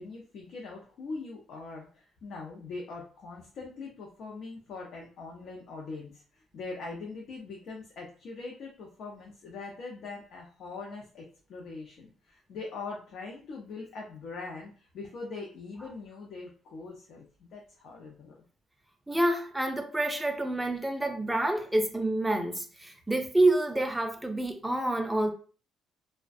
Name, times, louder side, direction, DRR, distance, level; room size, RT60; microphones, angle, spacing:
voice 1, 0.0-18.3, left 3 dB, 70° left, -1 dB, 0.5 m, -42 dB
voice 2, 19.1-25.3, right 1 dB, 10° right, 4 dB, 0.5 m, -28 dB
2.4 x 2.1 x 2.5 m, 0.41 s
cardioid pair, 85°, 0 cm